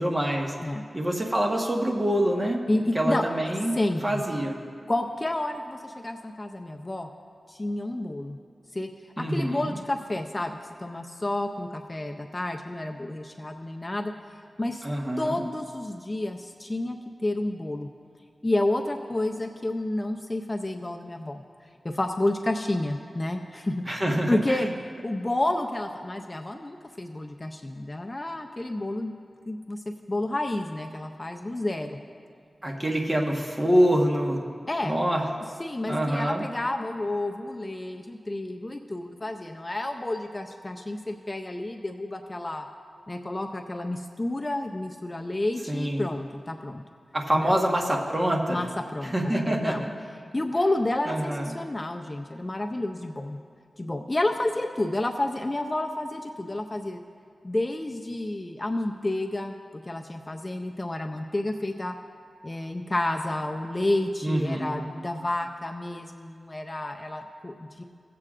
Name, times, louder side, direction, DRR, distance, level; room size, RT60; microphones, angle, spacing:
voice 1, 0.0-0.5 0.9-2.6 2.9-3.7 4.0-4.6 9.2-9.8 14.8-15.3 23.9-24.7 32.6-34.4 34.8-35.2 35.9-36.5 45.7-46.0 47.1-48.6 49.1-49.9 51.1-51.6 64.2-64.8, equal, 25° right, 0 dB, 1.3 m, -25 dB
voice 2, 2.7-3.2 3.7-4.2 4.9-7.1 7.5-8.4 8.7-8.9 9.2-14.1 14.6-14.8 15.2-17.9 18.4-21.4 21.8-24.0 24.3-24.7 25.0-29.2 29.5-32.0 34.7-35.0 35.6-42.7 43.1-46.8 47.3-47.5 48.5-49.9 50.3-53.4 53.8-57.0 57.4-61.9 62.4-67.8, left 1 dB, 30° left, 4 dB, 0.5 m, -30 dB
17.5 x 7.6 x 2.5 m, 2.2 s
cardioid pair, 60°, 0 cm